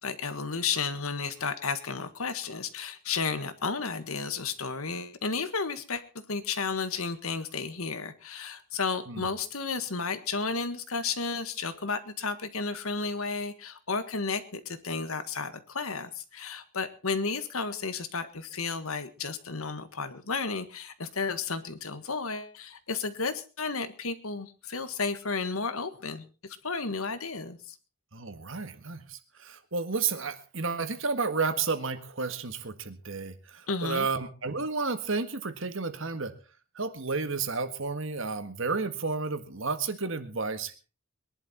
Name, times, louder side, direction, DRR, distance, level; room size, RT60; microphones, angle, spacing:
voice 1, 0.0-6.0 6.3-27.8 33.7-34.1, left 4 dB, 80° left, 11 dB, 1.7 m, -33 dB
voice 2, 28.1-36.3 36.7-40.8, right 4 dB, 60° right, 10 dB, 1.7 m, -32 dB
22.0 x 11.5 x 4.4 m, 0.34 s
head